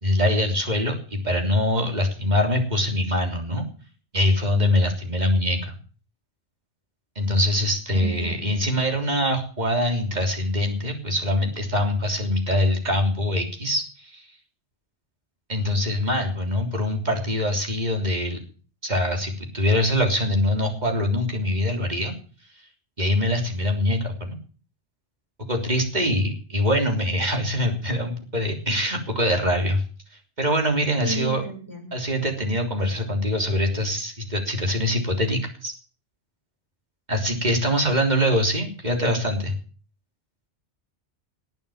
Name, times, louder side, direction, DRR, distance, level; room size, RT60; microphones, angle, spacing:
voice 1, 0.0-3.7 4.1-5.7 7.2-14.3 15.5-18.4 18.8-22.2 23.0-24.4 25.5-29.8 30.4-31.4 31.9-35.7 37.1-39.5, left 1 dB, 40° right, 3 dB, 3.6 m, -23 dB
voice 2, 7.9-8.6 31.0-32.0, right 3 dB, 15° left, 1 dB, 6.1 m, -32 dB
19.5 x 9.0 x 7.3 m, 0.41 s
omnidirectional pair, 1.2 m